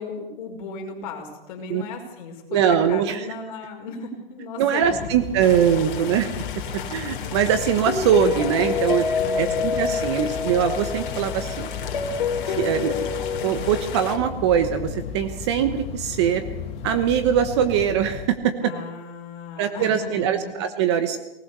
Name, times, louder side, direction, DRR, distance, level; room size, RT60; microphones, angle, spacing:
voice 1, 0.0-5.1 9.2-9.8 18.6-20.6, left 4 dB, 35° left, 2 dB, 5.3 m, -36 dB
voice 2, 2.5-3.3 4.6-6.3 6.9-9.1 9.4-11.7 12.4-13.1 13.4-16.4 16.8-18.7 19.6-21.2, right 9 dB, 30° right, 9 dB, 1.1 m, -22 dB
sound 1, 4.8-18.3, left 7 dB, 20° left, 2.0 m, -35 dB
sound 2, 5.4-14.2, left 6 dB, 55° left, 3.2 m, -28 dB
20.5 x 19.5 x 6.8 m, 0.94 s
hypercardioid pair, 165°, 30 cm